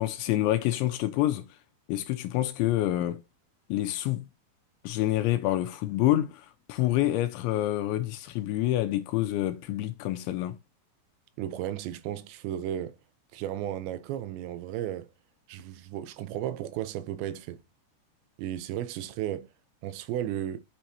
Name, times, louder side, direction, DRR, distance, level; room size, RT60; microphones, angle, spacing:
voice 1, 0.0-1.4 1.9-3.2 3.7-4.2 4.8-10.6, left 14 dB, 80° left, 2.9 m, -27 dB
voice 2, 11.4-13.0 13.3-15.1 15.5-17.6 18.4-19.5 19.8-20.6, right 11 dB, 75° right, 2.8 m, -34 dB
9.0 x 6.2 x 2.8 m
omnidirectional pair, 5.6 m